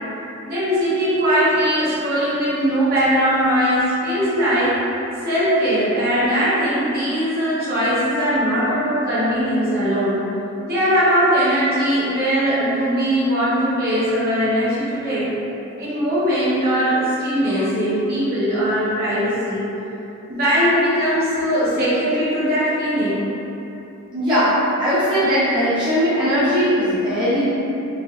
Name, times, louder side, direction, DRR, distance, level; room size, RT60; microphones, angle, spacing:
voice 1, 0.4-4.7 5.2-10.2 10.6-15.3 15.8-19.6 20.3-23.2, equal, 45° right, -10 dB, 0.9 m, -20 dB
voice 2, 24.1-24.5 24.8-27.5, equal, 20° right, -14 dB, 0.6 m, -19 dB
3.2 x 2.5 x 2.4 m, 2.9 s
head